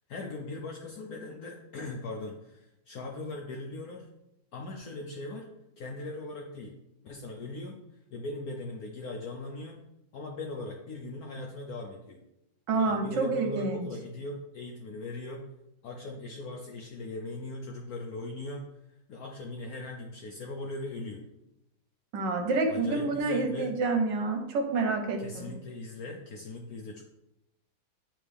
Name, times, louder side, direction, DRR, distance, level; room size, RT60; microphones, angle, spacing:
voice 1, 0.1-4.1 4.5-5.5 5.8-6.7 7.0-7.8 8.1-9.8 10.1-12.2 12.7-15.4 15.8-18.6 19.1-21.2 22.7-23.7 25.2-27.0, left 2 dB, 70° left, 1 dB, 0.9 m, -39 dB
voice 2, 12.7-13.9 22.1-25.5, right 3 dB, 65° right, 4 dB, 1.3 m, -28 dB
9.0 x 3.4 x 3.3 m, 0.86 s
omnidirectional pair, 2.2 m